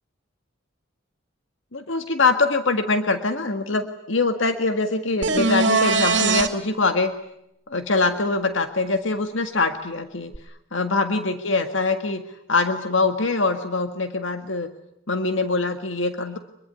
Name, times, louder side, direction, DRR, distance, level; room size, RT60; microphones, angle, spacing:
voice 1, 1.7-7.1 7.7-10.3 10.7-12.2 12.5-14.7 15.1-16.4, left 3 dB, 75° left, 7 dB, 1.8 m, -23 dB
sound 1, 5.2-6.5 10.3-10.4, right 3 dB, 60° right, 2.6 m, -20 dB
25.0 x 22.5 x 9.5 m, 0.79 s
head